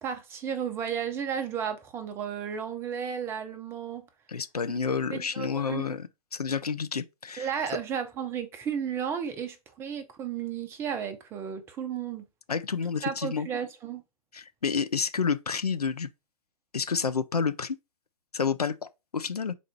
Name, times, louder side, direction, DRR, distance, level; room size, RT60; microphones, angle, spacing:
voice 1, 0.0-4.1 5.1-5.9 7.4-12.3 13.0-14.0, right 8 dB, 15° right, 0.4 m, -33 dB
voice 2, 4.3-7.5 12.5-13.5 14.3-16.1 16.7-17.8 18.3-19.5, left 6 dB, 85° left, 0.4 m, -29 dB
4.0 x 2.4 x 4.3 m
figure-of-eight pair, 120°, 19 cm